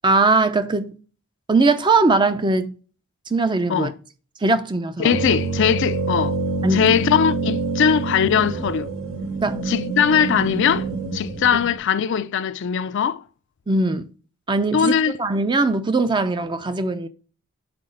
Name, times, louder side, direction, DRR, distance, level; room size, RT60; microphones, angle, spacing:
voice 1, 0.0-0.9 1.5-2.7 3.3-3.9 4.4-5.2 6.6-6.8 9.4-9.6 13.7-14.1 14.5-14.9 15.2-17.1, right 3 dB, 20° right, 0.5 m, -20 dB
voice 2, 5.0-6.4 6.7-8.9 9.7-10.9 11.1-13.2 14.7-15.2, left 7 dB, 60° left, 0.4 m, -20 dB
sound 1, 5.1-11.8, right 3 dB, 70° right, 0.9 m, -26 dB
5.9 x 4.1 x 5.0 m
head